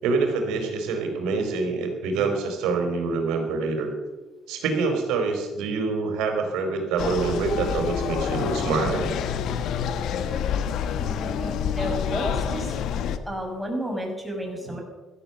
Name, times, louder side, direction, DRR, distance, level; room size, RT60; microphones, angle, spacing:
voice 1, 0.0-3.9 4.5-9.1 14.7-14.8, right 4 dB, 85° right, 4 dB, 3.9 m, -26 dB
sound 1, 7.0-13.2, left 8 dB, 75° left, 1.2 m, -27 dB
voice 2, 11.0-12.8 13.3-14.8, equal, ahead, 0 dB, 5.8 m, -32 dB
15.5 x 13.0 x 6.7 m, 1.3 s
cardioid pair, 90°, 0 cm